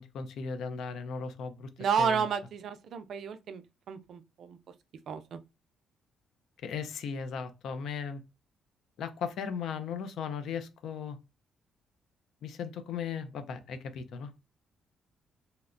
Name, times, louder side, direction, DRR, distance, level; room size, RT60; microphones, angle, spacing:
voice 1, 0.0-1.7 2.0-2.3 6.6-8.2 9.0-11.2 12.4-14.4, left 6 dB, 75° left, 0.4 m, -37 dB
voice 2, 1.8-4.6 5.1-5.4, right 6 dB, 65° right, 0.3 m, -31 dB
2.8 x 2.0 x 2.5 m
cardioid pair, 90°, 0 cm